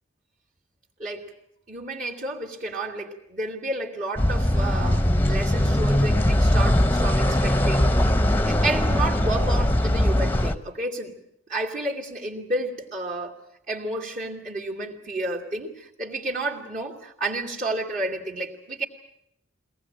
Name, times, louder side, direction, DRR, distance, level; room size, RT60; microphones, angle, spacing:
voice 1, 1.7-7.9 8.5-11.2 11.5-13.4 13.7-18.8, right 2 dB, 45° right, -2 dB, 2.8 m, -31 dB
sound 1, 4.2-10.5, left 1 dB, 10° left, 0.9 m, -21 dB
22.5 x 18.5 x 8.8 m, 0.76 s
head